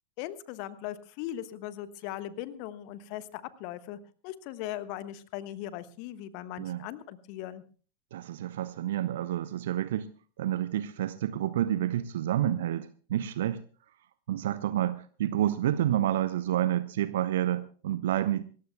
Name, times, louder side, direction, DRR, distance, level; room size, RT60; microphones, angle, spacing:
voice 1, 0.2-7.6, left 12 dB, 45° left, 13 dB, 1.2 m, -39 dB
voice 2, 8.1-10.1 10.4-13.6 14.3-18.4, right 12 dB, 60° right, 15 dB, 0.7 m, -29 dB
27.0 x 14.5 x 2.2 m, 0.40 s
figure-of-eight pair, 90°, 0 cm